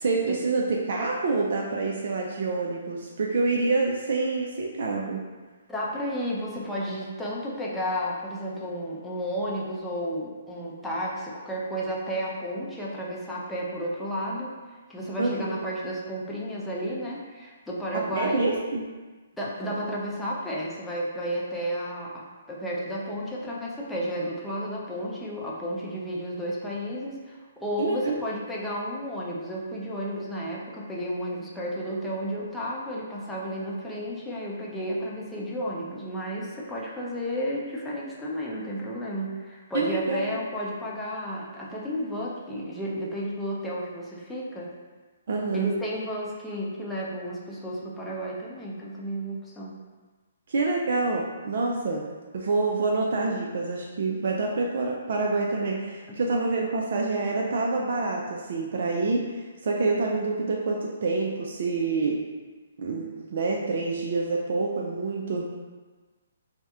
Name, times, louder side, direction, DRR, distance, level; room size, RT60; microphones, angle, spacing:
voice 1, 0.0-5.2 15.2-15.6 18.1-18.8 27.8-28.2 39.7-40.2 45.3-45.8 50.5-52.0 52.3-62.2 62.8-65.4, right 3 dB, 60° right, -1 dB, 0.4 m, -27 dB
voice 2, 5.7-14.6 14.9-18.5 19.4-44.7 45.5-49.7, equal, 5° left, -6 dB, 0.5 m, -32 dB
2.7 x 2.1 x 3.5 m, 1.3 s
hypercardioid pair, 140°, 0 cm